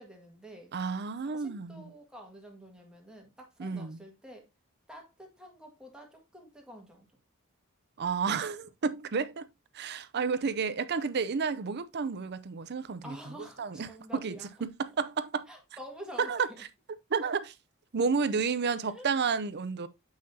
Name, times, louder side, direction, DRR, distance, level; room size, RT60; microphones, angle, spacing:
voice 1, 0.0-0.7 1.2-4.5 4.9-7.1 13.0-14.5 15.5-16.3 18.8-19.1, equal, 5° right, 1.9 m, -48 dB
voice 2, 0.7-1.9 3.6-4.0 8.0-9.5 9.7-14.3 14.6-15.5 16.2-16.5 17.1-17.5 17.9-19.9, right 5 dB, 50° right, 0.6 m, -31 dB
7.7 x 5.6 x 2.8 m
head